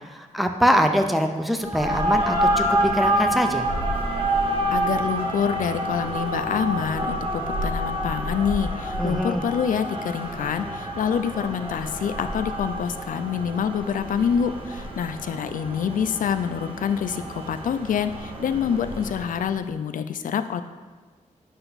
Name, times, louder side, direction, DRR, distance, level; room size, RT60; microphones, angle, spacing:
voice 1, 0.1-3.7 9.0-9.4, equal, ahead, 5 dB, 0.5 m, -23 dB
sound 1, 1.6-19.5, right 1 dB, 40° right, 1.0 m, -28 dB
voice 2, 4.7-20.6, left 7 dB, 85° left, 10 dB, 0.4 m, -26 dB
7.9 x 5.6 x 4.0 m, 1.3 s
wide cardioid pair, 175°, 14 cm